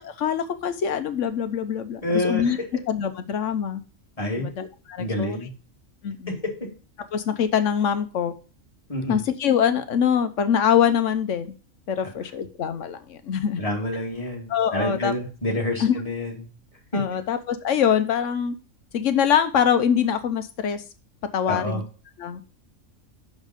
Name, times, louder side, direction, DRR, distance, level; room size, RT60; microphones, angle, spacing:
voice 1, 0.0-2.6 2.9-3.8 4.4-5.4 6.0-6.4 7.1-8.3 9.1-11.5 11.9-13.6 14.5-15.1 15.8-15.9 16.9-18.5 18.9-20.8 21.3-21.8 22.2-22.5, left 8 dB, 70° left, 10 dB, 1.1 m, -24 dB
voice 2, 2.0-2.6 4.2-4.5 5.0-5.5 6.3-6.7 8.9-9.2 13.6-16.5 16.9-17.0 21.5-21.8, left 1 dB, 25° left, -1 dB, 2.1 m, -28 dB
6.4 x 5.3 x 5.2 m, 0.36 s
omnidirectional pair, 1.4 m